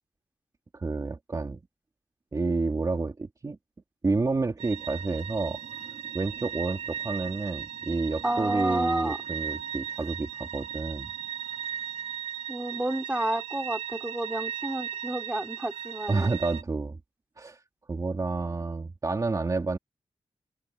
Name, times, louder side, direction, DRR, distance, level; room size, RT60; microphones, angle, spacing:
voice 1, 0.7-1.6 2.3-3.6 4.0-5.6 6.1-11.1 16.1-17.0 17.4-17.6 17.9-19.8, right 3 dB, 35° right, 2.9 m, -29 dB
sound 1, 4.6-16.6, right 8 dB, 85° right, 2.2 m, -37 dB
voice 2, 8.2-9.2 12.5-16.3, right 1 dB, 10° right, 3.9 m, -30 dB
wide cardioid pair, 150°, 11 cm